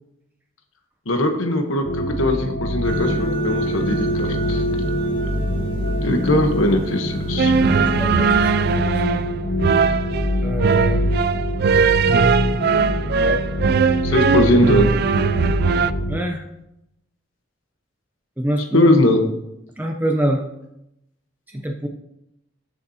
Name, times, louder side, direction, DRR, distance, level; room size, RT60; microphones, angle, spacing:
voice 1, 1.1-4.6 6.0-7.5 14.0-14.9 18.7-19.2, left 1 dB, 80° left, 4 dB, 1.1 m, -20 dB
sound 1, 1.8-16.2, equal, 55° left, 0.8 m, -24 dB
sound 2, 2.8-8.8, right 1 dB, 80° right, 2.6 m, -30 dB
sound 3, 7.4-15.9, right 6 dB, 50° right, 0.3 m, -20 dB
voice 2, 7.8-9.0 10.4-11.0 13.2-13.4 16.1-16.4 18.4-18.9 19.8-20.4 21.6-21.9, right 1 dB, 10° right, 2 dB, 0.6 m, -25 dB
14.0 x 6.8 x 2.8 m, 0.83 s
head